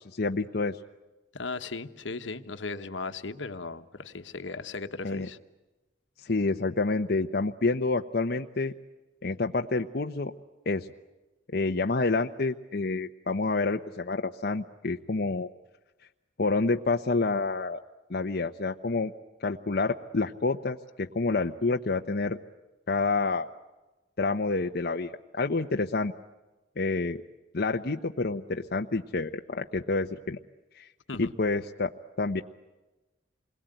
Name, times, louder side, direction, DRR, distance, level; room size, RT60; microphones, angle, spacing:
voice 1, 0.2-0.8 5.0-5.3 6.2-8.7 9.2-10.3 10.7-10.9 11.5-15.5 16.4-17.8 18.1-19.1 19.4-22.4 22.9-23.5 24.2-26.1 26.8-27.2 27.5-30.4 30.8-30.9 31.2-31.9 32.2-32.4, left 3 dB, 55° left, 4 dB, 0.9 m, -28 dB
voice 2, 1.3-5.4 31.1-31.3, left 3 dB, 80° left, 9 dB, 1.4 m, -37 dB
28.5 x 22.0 x 9.2 m, 1.1 s
head